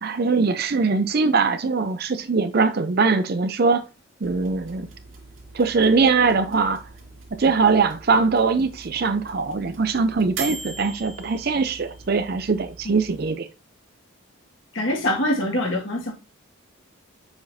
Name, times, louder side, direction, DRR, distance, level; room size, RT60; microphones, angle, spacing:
voice 1, 0.0-3.8 4.2-4.9 5.5-6.8 7.3-13.5, right 4 dB, 50° right, 0.5 m, -21 dB
sound 1, 4.2-13.3, right 4 dB, 75° right, 2.1 m, -41 dB
voice 2, 14.7-16.1, left 1 dB, 65° left, 1.7 m, -24 dB
7.1 x 5.0 x 2.7 m
head